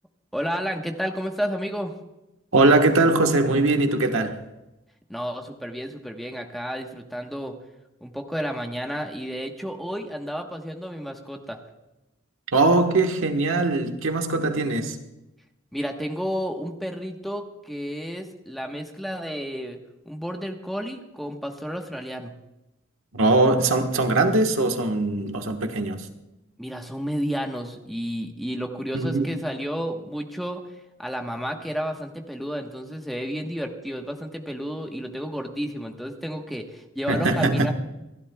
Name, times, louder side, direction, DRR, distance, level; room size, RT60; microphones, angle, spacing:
voice 1, 0.3-1.9 5.1-7.5 8.0-11.6 15.7-19.8 20.0-22.3 26.6-30.6 31.0-37.7, equal, ahead, 1.1 m, -31 dB
voice 2, 2.5-4.4 12.5-15.0 23.1-26.1 28.9-29.2 37.1-37.7, right 2 dB, 85° right, 1.4 m, -21 dB
28.0 x 11.0 x 2.3 m
head